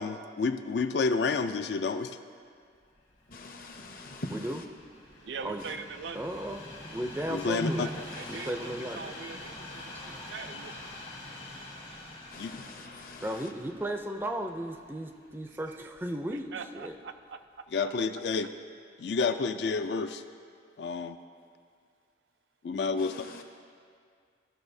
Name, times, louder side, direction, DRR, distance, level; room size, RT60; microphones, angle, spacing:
voice 1, 0.0-2.1 7.3-7.9 12.4-12.5 17.7-18.5 19.0-20.2 20.8-21.2 22.6-23.3, left 4 dB, 70° left, 9 dB, 0.4 m, -29 dB
Train, 3.0-16.2 16.9-17.0, left 2 dB, 90° left, 1.8 m, -46 dB
voice 2, 3.3-4.6 7.6-7.7 8.1-8.5 12.3-13.5 23.0-23.4, left 1 dB, 50° left, 4 dB, 0.7 m, -40 dB
voice 3, 4.3-4.6 5.4-5.6 6.1-6.6 6.9-7.9 8.3-9.1 13.2-16.9, right 1 dB, 10° right, 4 dB, 0.4 m, -35 dB
voice 4, 5.2-6.3 7.5-10.9 15.8-15.9 16.3-17.4, right 5 dB, 75° right, 8 dB, 0.4 m, -42 dB
14.5 x 6.2 x 2.7 m, 2.2 s
head